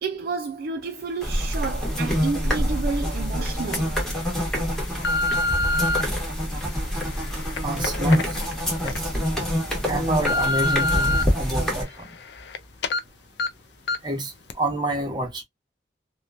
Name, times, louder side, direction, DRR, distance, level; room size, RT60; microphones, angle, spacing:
voice 1, 0.0-4.0, right 4 dB, 55° right, 0.4 m, -30 dB
sound 1, 1.2-11.8, equal, 5° left, 1.1 m, -26 dB
sound 2, 2.7-2.8 3.5-3.8 4.4-6.0 6.7-9.0 9.4-9.5 9.9-11.2 11.7-12.6 12.8-13.0 13.4-13.5 13.9-14.1 14.5-14.6, left 2 dB, 70° left, 0.4 m, -27 dB
voice 2, 7.6-8.3 8.8-9.0 9.9-11.9 14.0-14.3 14.6-15.4, right 1 dB, 25° right, 0.9 m, -27 dB
2.9 x 2.2 x 2.3 m
head